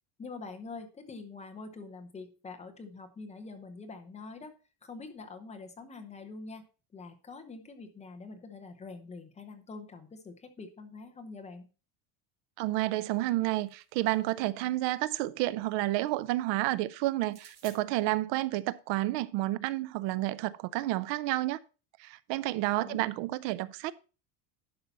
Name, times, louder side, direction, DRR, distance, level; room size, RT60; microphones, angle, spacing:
voice 1, 0.2-4.5 4.8-6.6 6.9-11.7 22.8-23.1, left 3 dB, 15° left, 0.8 m, -45 dB
voice 2, 12.6-21.6 22.0-23.9, right 17 dB, 75° right, 0.6 m, -30 dB
sound 1, 13.5-14.5 17.2-17.8, right 6 dB, 35° right, 2.0 m, -55 dB
11.0 x 5.7 x 4.1 m
cardioid pair, 170°, 44 cm